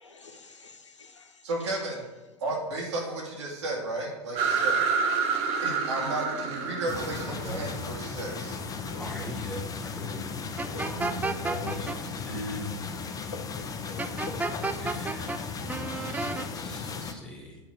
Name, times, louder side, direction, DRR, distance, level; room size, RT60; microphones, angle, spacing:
voice 1, 0.0-1.3 8.9-9.2 10.7-11.0 11.6-11.7 13.6-14.0, left 3 dB, 85° left, 5 dB, 0.9 m, -47 dB
voice 2, 1.4-2.0 2.4-4.9 5.6-8.6, right 2 dB, 75° right, -2 dB, 2.5 m, -33 dB
sound 1, 4.3-8.9, right 5 dB, 45° right, 1.1 m, -29 dB
sound 2, 6.9-17.1, left 5 dB, 25° left, 0.7 m, -36 dB
voice 3, 9.0-10.3 10.7-12.8 14.8-17.6, left 1 dB, 5° left, -1 dB, 2.1 m, -39 dB
sound 3, 10.6-12.0 14.0-15.4 15.7-16.5, right 3 dB, 10° right, 0.5 m, -31 dB
8.9 x 4.1 x 6.5 m, 1.1 s
figure-of-eight pair, 85°, 15 cm